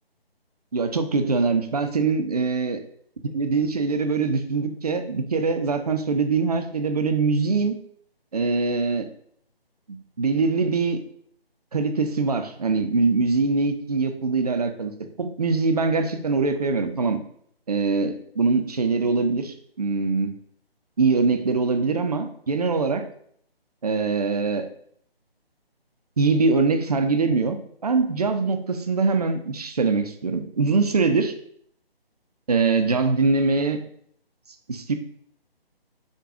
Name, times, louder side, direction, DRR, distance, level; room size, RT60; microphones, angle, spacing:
voice 1, 0.7-2.8 3.3-7.8 8.3-9.1 9.9-11.0 11.7-14.9 15.2-17.2 17.7-20.3 21.0-23.1 23.8-24.7 26.2-31.3 32.5-33.8 34.7-34.9, right 4 dB, 40° right, 7 dB, 0.4 m, -23 dB
4.9 x 2.3 x 4.7 m, 0.66 s
figure-of-eight pair, 155°, 31 cm